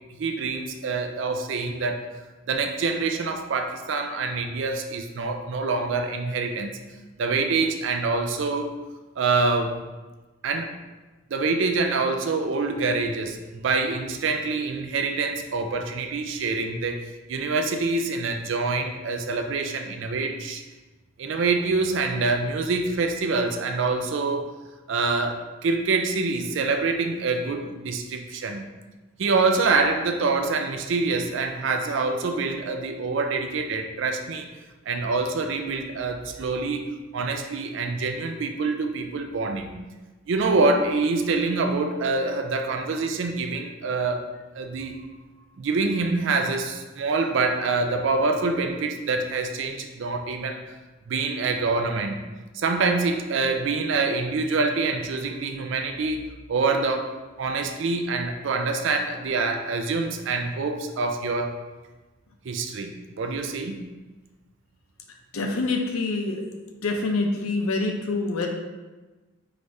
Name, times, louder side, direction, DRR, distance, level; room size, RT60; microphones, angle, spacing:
voice 1, 0.2-2.1 2.5-6.8 7.2-8.8 9.2-9.8 10.4-10.7 11.3-20.6 21.2-24.5 24.9-28.6 29.2-34.5 34.9-39.7 40.3-44.2 44.5-45.0 45.6-50.6 51.1-52.2 52.5-56.2 56.5-61.5 62.4-63.8, right 3 dB, 60° right, 5 dB, 0.4 m, -26 dB
voice 2, 65.3-66.4 66.8-68.5, left 3 dB, 85° left, 3 dB, 0.6 m, -26 dB
4.9 x 3.2 x 2.6 m, 1.2 s
head